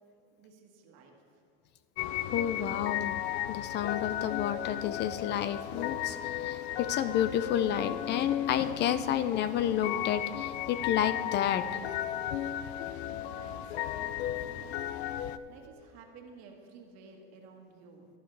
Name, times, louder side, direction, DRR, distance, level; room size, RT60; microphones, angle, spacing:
voice 1, 0.4-1.2 12.8-14.9 15.5-18.1, right 4 dB, 55° right, 2 dB, 1.6 m, -54 dB
sound 1, 2.0-15.4, left 12 dB, 90° left, 0.5 m, -35 dB
voice 2, 2.3-3.2 3.5-11.8, left 10 dB, 35° left, 12 dB, 0.4 m, -30 dB
11.5 x 11.0 x 3.3 m, 2.4 s
supercardioid pair, 125°, 31 cm